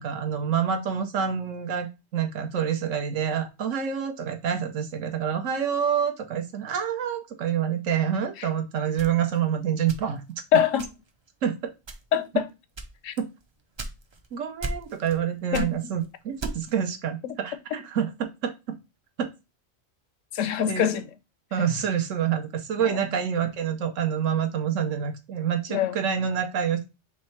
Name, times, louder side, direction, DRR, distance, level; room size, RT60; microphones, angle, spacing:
voice 1, 0.0-10.2 11.4-11.7 13.2-13.3 14.3-18.5 19.2-19.3 20.7-21.0 21.5-26.8, right 8 dB, 80° right, 1.1 m, -27 dB
sound 1, 9.0-10.4 10.8-11.2 11.8-12.3 12.8-14.3 14.6-15.2 15.5-16.8, right 2 dB, 45° right, 0.3 m, -36 dB
voice 2, 10.5-10.9 12.1-12.5 13.0-13.1 15.5-15.8 20.3-21.1 22.8-23.0 25.7-26.0, left 9 dB, 90° left, 1.0 m, -24 dB
3.6 x 3.2 x 4.3 m
omnidirectional pair, 1.3 m